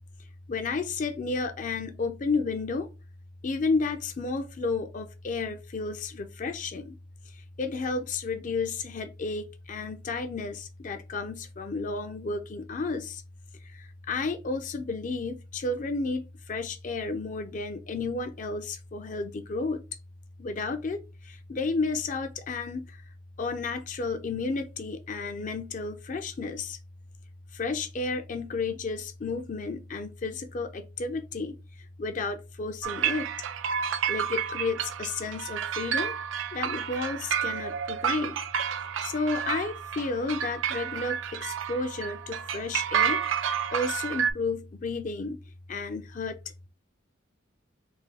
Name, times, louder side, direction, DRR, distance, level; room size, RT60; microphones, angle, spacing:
voice 1, 0.5-2.9 3.4-7.0 7.6-13.2 13.7-19.8 20.4-22.8 23.4-26.8 27.5-31.6 32.0-33.3 34.1-36.1 36.5-38.4 39.0-43.2 43.7-45.4 45.7-46.4, left 3 dB, 40° left, 0.4 m, -32 dB
sound 1, 32.8-44.3, right 8 dB, 70° right, 0.4 m, -30 dB
3.5 x 2.2 x 3.3 m
head